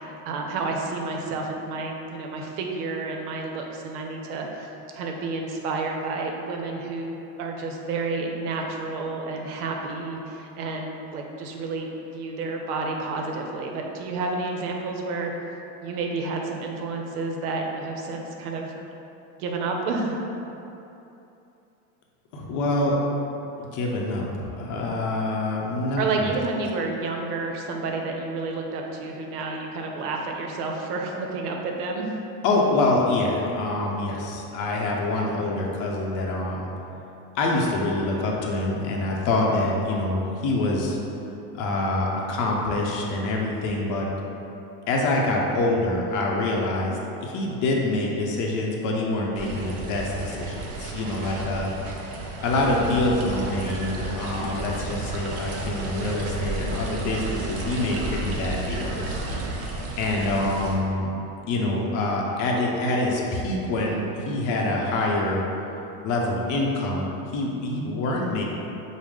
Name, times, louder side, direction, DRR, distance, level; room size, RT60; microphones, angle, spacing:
voice 1, 0.1-4.7 4.9-15.3 15.8-18.7 19.4-20.2 26.0-32.1, right 3 dB, 85° right, 1 dB, 0.7 m, -30 dB
voice 2, 22.3-22.9 23.6-26.3 32.4-36.7 37.3-41.0 41.5-44.1 44.9-51.7 52.4-59.2 60.0-61.1 61.5-65.4 66.0-67.1 67.3-68.4, left 2 dB, 45° left, -2 dB, 0.7 m, -25 dB
sound 1, 49.4-60.7, right 2 dB, 35° right, 0.5 m, -32 dB
4.8 x 2.1 x 3.5 m, 2.9 s
supercardioid pair, 120°, 44 cm